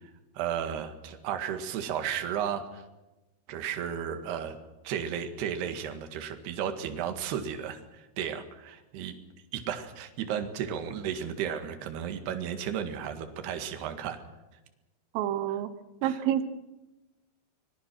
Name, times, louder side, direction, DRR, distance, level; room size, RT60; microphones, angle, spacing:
voice 1, 0.4-2.8 3.5-4.6 4.8-9.1 9.5-14.2 16.0-16.2, right 8 dB, 60° right, 6 dB, 3.6 m, -34 dB
voice 2, 15.2-15.7 16.0-16.4, right 11 dB, 90° right, 11 dB, 3.8 m, -28 dB
25.0 x 21.5 x 6.1 m, 1.0 s
omnidirectional pair, 5.7 m